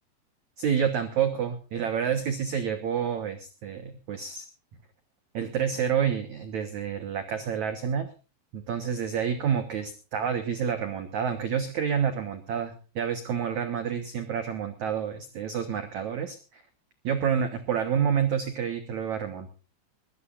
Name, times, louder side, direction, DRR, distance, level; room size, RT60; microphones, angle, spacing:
voice 1, 0.6-4.4 5.3-8.1 8.5-16.6 17.0-19.5, right 7 dB, 85° right, 8 dB, 1.6 m, -28 dB
21.5 x 16.0 x 2.6 m, 0.34 s
omnidirectional pair, 5.4 m